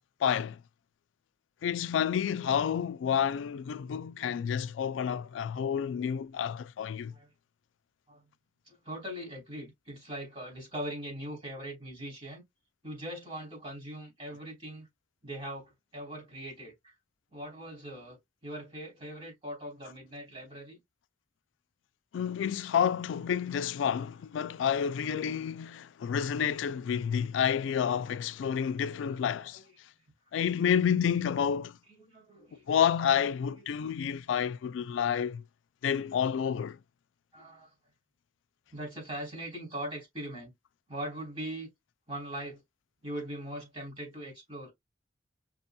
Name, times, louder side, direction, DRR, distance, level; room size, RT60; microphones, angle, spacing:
voice 1, 0.2-0.6 1.6-7.1 22.1-29.6 30.3-31.8 32.7-35.4 35.8-36.8, left 8 dB, 80° left, 0.3 m, -29 dB
voice 2, 4.8-5.3 7.1-7.3 8.1-8.2 8.7-12.4 12.8-14.9 15.2-16.9 17.3-20.8 28.6-29.7 32.0-32.6 37.3-37.7 38.7-40.5 40.9-41.7 42.1-42.6 43.0-44.7, right 1 dB, 30° right, 3.0 m, -41 dB
5.9 x 2.8 x 2.2 m
head